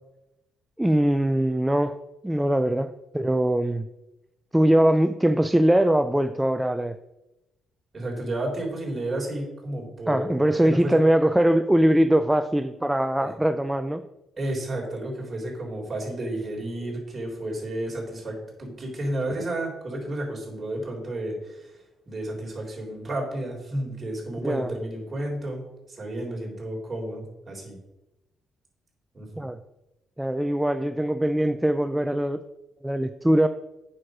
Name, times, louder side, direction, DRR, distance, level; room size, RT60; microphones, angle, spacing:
voice 1, 0.8-2.0 2.2-3.9 4.5-7.0 10.1-14.0 24.4-24.7 29.4-29.6 30.2-32.4 32.8-33.5, right 1 dB, 5° right, 9 dB, 0.4 m, -22 dB
voice 2, 7.9-11.0 13.2-13.3 14.4-21.7 22.1-25.6 25.9-27.8 29.1-29.5, right 1 dB, 30° right, -2 dB, 3.8 m, -32 dB
8.6 x 6.5 x 5.0 m, 0.97 s
cardioid pair, 90°, 0 cm